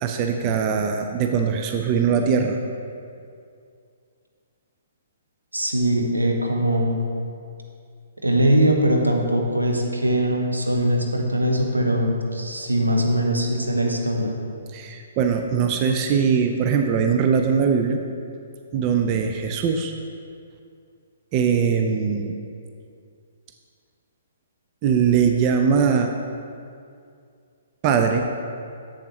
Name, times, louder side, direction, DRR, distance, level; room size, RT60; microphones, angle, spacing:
voice 1, 0.0-2.6 14.7-18.0 18.7-19.9 21.3-22.3 24.8-26.1 27.8-28.3, right 6 dB, 35° right, 5 dB, 0.4 m, -21 dB
voice 2, 5.5-7.0 8.2-14.4, right 1 dB, 90° right, 1 dB, 0.9 m, -21 dB
7.8 x 6.8 x 3.1 m, 2.4 s
figure-of-eight pair, 125°, 0 cm